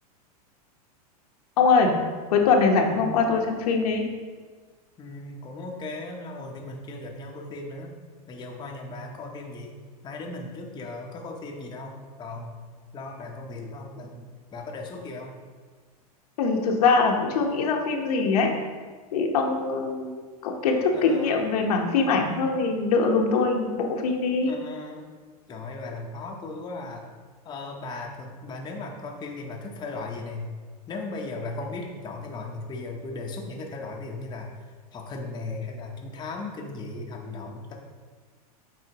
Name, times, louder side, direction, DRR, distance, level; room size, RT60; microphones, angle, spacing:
voice 1, 1.6-2.0 2.3-4.0 16.4-18.5 19.1-20.1 20.4-24.5, left 4 dB, 75° left, 1 dB, 1.0 m, -22 dB
voice 2, 5.0-8.0 8.3-9.7 10.0-12.6 12.9-15.3 20.9-21.4 24.5-25.1 25.5-27.0 27.4-30.5 30.9-34.5 34.9-37.7, left 3 dB, 20° left, 0 dB, 0.8 m, -37 dB
7.7 x 4.2 x 2.9 m, 1.5 s
supercardioid pair, 125°, 20 cm